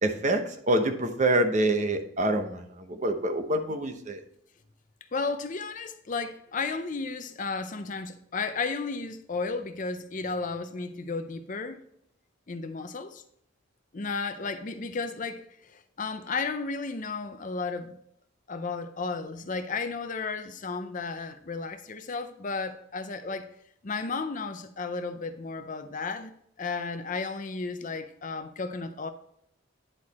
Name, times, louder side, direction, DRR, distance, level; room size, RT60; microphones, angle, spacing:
voice 1, 0.0-4.2, right 1 dB, 35° right, 0.8 m, -26 dB
voice 2, 5.1-11.8 12.5-13.2 13.9-18.0 18.5-23.5 23.8-26.3 26.6-29.1, left 4 dB, 40° left, 0.5 m, -33 dB
10.0 x 4.8 x 4.1 m
head